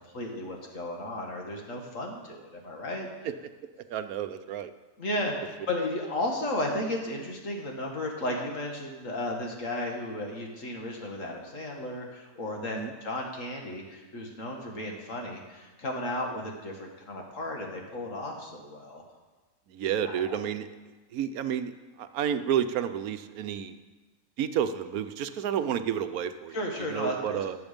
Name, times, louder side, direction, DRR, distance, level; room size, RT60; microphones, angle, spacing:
voice 1, 0.1-3.1 5.0-19.0 20.0-20.2 26.5-27.4, left 1 dB, 60° left, 1 dB, 2.2 m, -34 dB
voice 2, 3.9-4.7 12.7-12.9 19.7-20.7 21.1-21.7 22.0-23.8 24.4-26.6 26.9-27.6, right 9 dB, 75° right, 10 dB, 1.2 m, -30 dB
18.5 x 7.1 x 5.2 m, 1.2 s
omnidirectional pair, 1.6 m